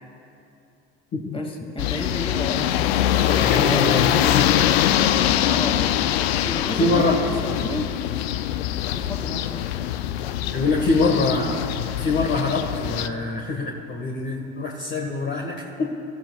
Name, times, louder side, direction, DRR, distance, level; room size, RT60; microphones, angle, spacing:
voice 1, 1.2-2.8 3.1-3.9 5.3-6.1 6.4-7.9 8.9-9.7, left 1 dB, 15° left, 2 dB, 2.4 m, -32 dB
sound 1, 1.8-13.1, left 11 dB, 75° left, 0.6 m, -23 dB
voice 2, 3.5-4.1 6.8-7.2 10.5-11.6 12.0-15.8, left 3 dB, 35° left, -1 dB, 1.7 m, -24 dB
27.5 x 13.5 x 2.4 m, 2.7 s
hypercardioid pair, 75°, 31 cm